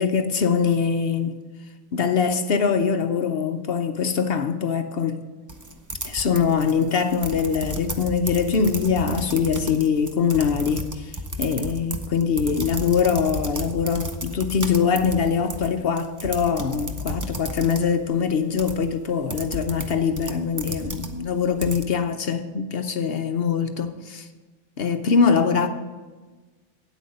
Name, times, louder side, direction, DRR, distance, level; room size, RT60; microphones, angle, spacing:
voice 1, 0.0-1.4 1.9-5.2 6.1-24.3 24.8-25.7, left 6 dB, 55° left, 0.7 m, -23 dB
sound 1, 5.5-21.8, right 1 dB, 25° right, 0.4 m, -34 dB
9.1 x 8.3 x 5.2 m
omnidirectional pair, 1.4 m